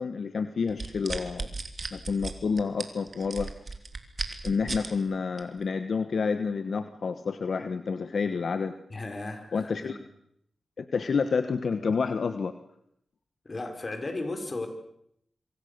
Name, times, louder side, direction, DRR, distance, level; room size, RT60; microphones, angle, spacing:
voice 1, 0.0-1.5 1.9-3.5 4.4-8.8 9.5-10.0 10.8-12.5, left 5 dB, 65° left, 9 dB, 1.2 m, -29 dB
sound 1, 0.7-4.9 5.4-5.6, right 3 dB, 45° right, 3.1 m, -35 dB
voice 2, 8.9-9.9 13.4-14.7, left 2 dB, 40° left, 6 dB, 4.9 m, -35 dB
25.5 x 25.0 x 6.8 m, 0.73 s
wide cardioid pair, 90°, 0 cm